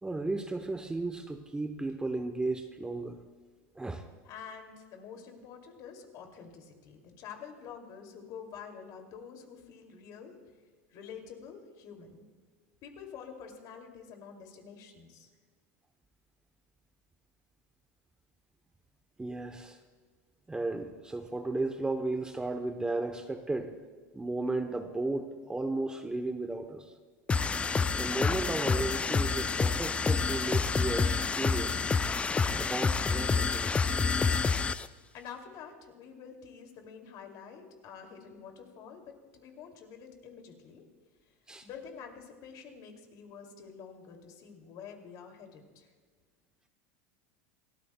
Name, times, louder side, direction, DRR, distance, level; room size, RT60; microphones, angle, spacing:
voice 1, 0.0-3.2 3.7-4.0 19.2-19.8 20.5-23.7 24.1-26.9 27.9-31.8 32.6-33.8 34.1-34.2 41.5-41.7, right 2 dB, 10° right, 7 dB, 0.8 m, -34 dB
voice 2, 4.2-10.4 10.9-12.2 12.8-15.3 35.1-40.8 41.6-45.9, left 6 dB, 50° left, 3 dB, 2.5 m, -48 dB
sound 1, 27.3-34.9, left 5 dB, 15° left, 0.3 m, -28 dB
27.5 x 13.5 x 2.2 m, 1.5 s
supercardioid pair, 115°, 8 cm